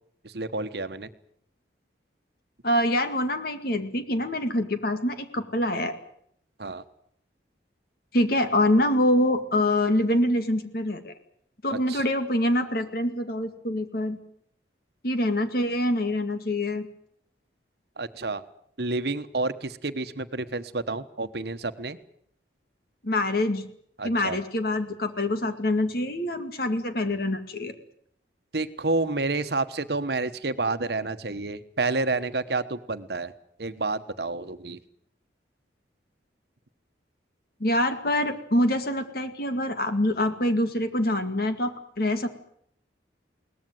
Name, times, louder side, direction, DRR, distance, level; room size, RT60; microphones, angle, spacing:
voice 1, 0.2-1.1 6.6-6.8 11.9-12.0 18.0-18.4 18.8-22.0 24.0-24.4 28.5-33.3 33.6-34.8, right 3 dB, 60° right, 10 dB, 1.2 m, -29 dB
voice 2, 2.6-6.0 8.1-11.1 11.6-14.2 15.0-16.9 23.0-23.6 24.0-27.7 37.6-42.3, left 1 dB, 55° left, 8 dB, 2.2 m, -25 dB
22.0 x 19.0 x 9.3 m, 0.69 s
head